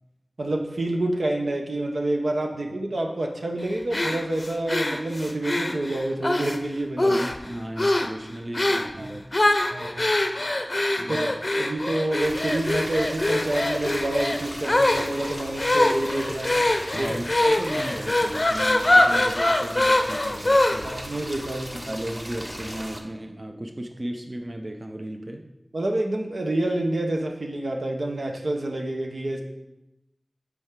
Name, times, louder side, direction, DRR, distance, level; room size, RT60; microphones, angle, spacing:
voice 1, 0.4-7.2 9.0-9.1 9.7-10.1 11.1-11.3 11.5-16.6 16.9-17.2 20.8-21.7 25.7-29.4, right 1 dB, 85° right, 2 dB, 0.9 m, -28 dB
sound 1, 3.9-6.6 7.0-7.5 7.8-8.1 8.5-8.9 9.3-21.0, left 1 dB, 45° left, 0.5 m, -23 dB
voice 2, 7.0-9.5 11.0-11.4 16.9-21.0 21.7-25.5, right 1 dB, 40° right, 5 dB, 0.5 m, -35 dB
sound 2, 12.2-23.0, equal, 20° right, 0.9 m, -38 dB
8.3 x 4.7 x 3.7 m, 0.94 s
wide cardioid pair, 55°, 0 cm